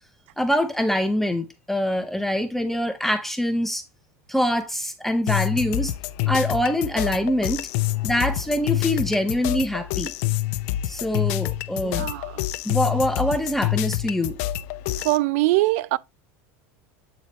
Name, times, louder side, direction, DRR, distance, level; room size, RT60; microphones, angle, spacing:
voice 1, 0.4-3.8 4.3-5.9 6.3-7.7 8.0-10.1 10.9-12.1 12.6-14.4, equal, 5° left, 0.7 m, -24 dB
sound 1, 5.3-15.2, left 15 dB, 70° left, 0.5 m, -27 dB
voice 2, 11.8-12.4 15.0-16.0, right 19 dB, 75° right, 0.4 m, -23 dB
8.2 x 4.0 x 3.0 m
supercardioid pair, 125°, 8 cm